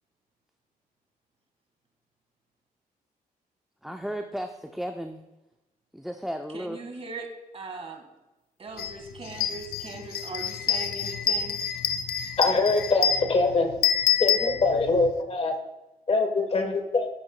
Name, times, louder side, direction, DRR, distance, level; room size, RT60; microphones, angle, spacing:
voice 1, 3.8-5.2 5.9-6.8, equal, ahead, 4 dB, 0.5 m, -34 dB
voice 2, 6.5-7.3 7.5-8.0 8.6-11.6, right 3 dB, 40° right, 3 dB, 1.8 m, -39 dB
sound 1, 8.8-8.9 9.3-15.1, left 7 dB, 90° left, 0.5 m, -27 dB
voice 3, 12.4-13.7 14.2-15.5 16.1-17.1, left 3 dB, 40° left, 6 dB, 1.2 m, -23 dB
11.0 x 11.0 x 2.2 m, 1.0 s
cardioid pair, 85°, 15 cm